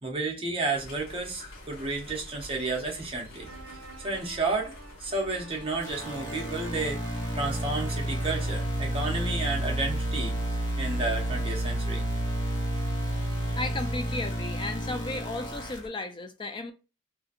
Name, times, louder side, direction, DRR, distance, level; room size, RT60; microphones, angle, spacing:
voice 1, 0.0-3.5 4.0-4.7 5.0-10.4 10.8-12.0, right 3 dB, 25° right, 0.7 m, -31 dB
sound 1, 0.7-15.9, left 1 dB, 85° left, 1.1 m, -47 dB
sound 2, 3.4-8.7, right 2 dB, 60° right, 0.7 m, -47 dB
sound 3, 5.8-15.8, right 1 dB, 55° left, 1.0 m, -30 dB
voice 2, 13.5-16.7, left 2 dB, 25° left, 0.3 m, -34 dB
2.7 x 2.6 x 2.4 m
head